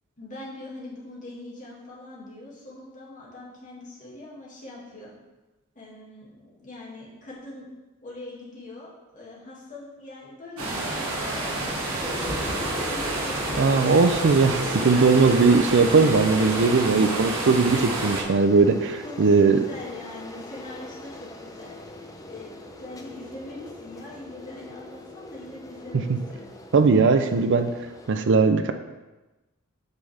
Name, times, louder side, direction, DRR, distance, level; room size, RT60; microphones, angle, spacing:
voice 1, 0.2-5.1 5.8-7.7 8.0-14.1 14.8-15.6 19.0-21.8 22.2-26.4, left 2 dB, 35° left, -5 dB, 2.2 m, -42 dB
sound 1, 10.6-18.2, right 2 dB, 80° right, 1.6 m, -29 dB
sound 2, 12.0-28.2, left 1 dB, 15° left, 0.5 m, -39 dB
voice 2, 13.6-19.6 26.1-26.2 26.7-27.7 28.1-28.7, right 4 dB, 55° right, 8 dB, 0.5 m, -19 dB
8.2 x 5.5 x 3.4 m, 1.1 s
head